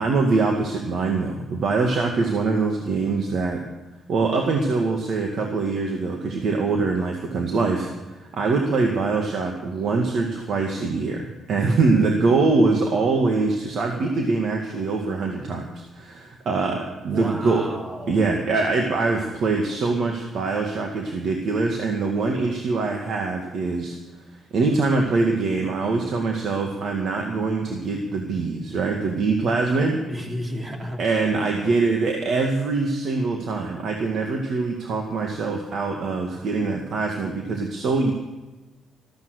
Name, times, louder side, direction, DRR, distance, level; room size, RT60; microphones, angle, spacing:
voice 1, 0.0-3.6 4.1-17.6 18.1-24.0 24.5-30.0 31.0-38.1, right 3 dB, 65° right, 2 dB, 1.9 m, -23 dB
voice 2, 17.1-18.3 30.1-31.7, equal, 25° right, 1 dB, 3.2 m, -33 dB
14.5 x 14.0 x 6.6 m, 1.1 s
cardioid pair, 90°, 0 cm